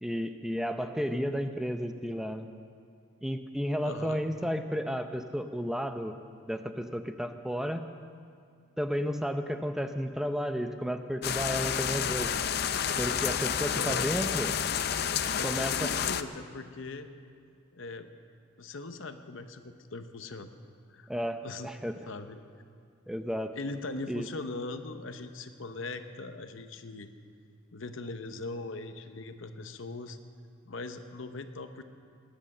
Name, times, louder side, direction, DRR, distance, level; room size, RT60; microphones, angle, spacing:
voice 1, 0.0-2.5 3.2-6.2 6.5-7.9 8.8-12.3 13.0-14.5 15.4-15.9 21.1-22.0 23.1-23.5 24.1-24.3, equal, ahead, 7 dB, 0.6 m, -32 dB
voice 2, 3.8-4.2 13.7-14.1 15.4-17.1 17.7-18.1 18.6-20.5 20.9-21.1 21.4-21.7 22.1-22.4 23.6-27.1 27.7-30.2 30.6-31.8, left 3 dB, 70° left, 8 dB, 0.8 m, -40 dB
sound 1, 11.2-16.2, left 8 dB, 50° left, 0.5 m, -30 dB
19.5 x 10.0 x 6.7 m, 2.2 s
head